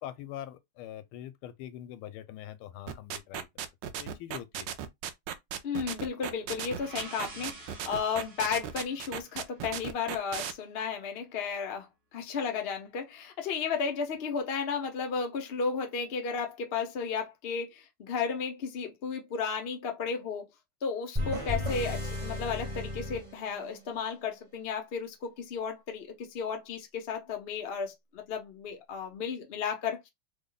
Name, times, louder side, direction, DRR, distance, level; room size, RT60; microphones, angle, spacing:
voice 1, 0.0-3.5 4.0-4.7 21.2-21.5, left 12 dB, 85° left, 1.4 m, -43 dB
sound 1, 2.9-10.5, right 9 dB, 75° right, 1.1 m, -36 dB
voice 2, 5.6-20.5 20.8-30.1, left 6 dB, 65° left, 0.6 m, -34 dB
sound 2, 6.3-10.1, right 4 dB, 55° right, 1.5 m, -50 dB
sound 3, 21.2-24.0, left 1 dB, 25° right, 0.7 m, -34 dB
3.5 x 2.1 x 3.8 m
omnidirectional pair, 2.3 m